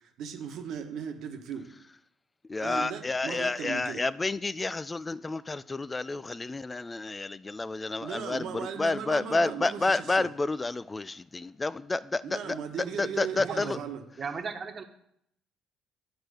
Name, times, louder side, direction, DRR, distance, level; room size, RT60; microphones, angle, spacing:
voice 1, 0.0-1.7 2.6-4.1 8.0-10.3 12.2-14.0, right 7 dB, 65° right, 1.2 m, -37 dB
voice 2, 2.5-8.4 8.8-12.0 13.0-13.8, left 3 dB, 25° left, 0.3 m, -30 dB
voice 3, 13.4-13.8 14.2-14.8, right 5 dB, 40° right, 1.3 m, -36 dB
9.4 x 4.4 x 6.6 m
hypercardioid pair, 55°, 0 cm